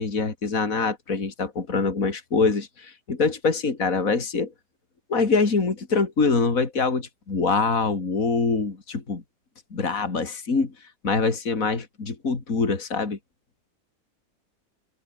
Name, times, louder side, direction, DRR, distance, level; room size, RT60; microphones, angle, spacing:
voice 1, 0.0-4.5 5.1-9.2 9.7-10.7 11.0-13.2, left 4 dB, 60° left, 3.4 m, -24 dB
omnidirectional pair, 1.7 m